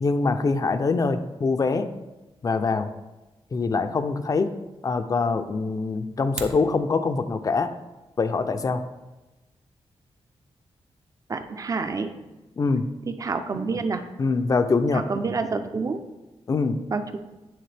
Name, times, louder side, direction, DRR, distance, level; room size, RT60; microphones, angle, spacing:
voice 1, 0.0-1.9 2.4-2.9 3.5-4.5 4.8-7.7 8.2-8.8 12.6-12.9 14.2-15.0 16.5-16.8, left 4 dB, 35° left, 9 dB, 0.4 m, -24 dB
sound 1, 6.1-6.7, right 5 dB, 90° right, 0.7 m, -36 dB
voice 2, 11.3-12.2 13.2-14.1 14.9-16.0 16.9-17.2, right 4 dB, 35° right, 8 dB, 0.5 m, -28 dB
9.3 x 3.5 x 3.4 m, 1.1 s
wide cardioid pair, 120°, 11 cm